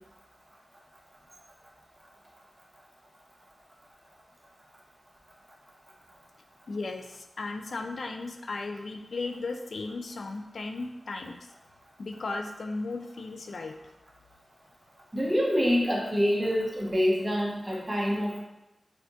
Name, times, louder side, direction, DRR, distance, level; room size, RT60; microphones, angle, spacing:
voice 1, 6.7-11.4 12.0-13.8, left 3 dB, 75° left, 5 dB, 0.4 m, -36 dB
voice 2, 15.1-18.4, equal, 25° right, -2 dB, 1.0 m, -26 dB
4.2 x 2.4 x 2.9 m, 0.91 s
cardioid pair, 50°, 0 cm